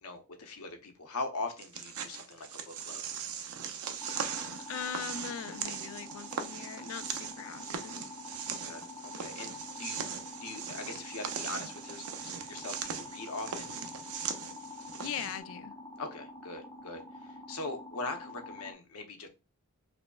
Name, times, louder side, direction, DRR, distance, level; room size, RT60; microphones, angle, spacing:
voice 1, 0.0-3.0 8.5-13.7 16.0-19.3, left 3 dB, 85° left, 0.7 m, -41 dB
sound 1, 1.6-15.4, right 7 dB, 85° right, 0.5 m, -40 dB
sound 2, 4.0-18.7, left 2 dB, 15° left, 0.6 m, -47 dB
voice 2, 4.6-8.1 15.0-15.7, left 8 dB, 65° left, 0.3 m, -40 dB
5.0 x 2.0 x 2.2 m
head